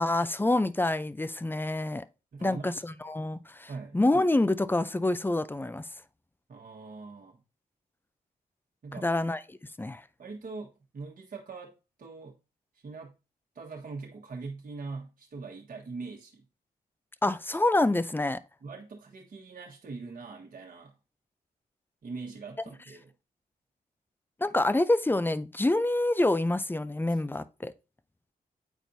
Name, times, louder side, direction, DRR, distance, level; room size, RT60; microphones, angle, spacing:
voice 1, 0.0-2.0 2.4-5.9 9.0-10.0 17.2-18.4 24.4-27.7, left 2 dB, 10° left, 0.5 m, -27 dB
voice 2, 2.3-2.8 3.7-4.0 6.5-7.4 8.8-9.1 10.2-11.7 12.0-12.3 12.7-13.1 13.5-16.4 18.6-20.9 22.0-23.1, right 4 dB, 60° right, 1.4 m, -42 dB
9.1 x 4.4 x 2.7 m
cardioid pair, 60°, 17 cm